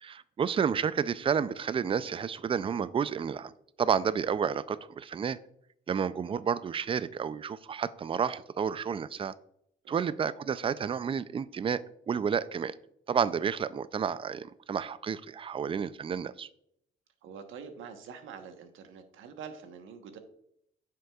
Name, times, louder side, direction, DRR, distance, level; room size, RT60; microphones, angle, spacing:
voice 1, 0.0-3.5 3.8-5.4 5.9-9.3 9.9-12.7 13.1-16.5, right 7 dB, 25° right, 17 dB, 0.4 m, -30 dB
voice 2, 17.2-20.2, right 6 dB, 80° right, 7 dB, 1.1 m, -45 dB
9.0 x 6.5 x 2.4 m, 0.74 s
cardioid pair, 90°, 20 cm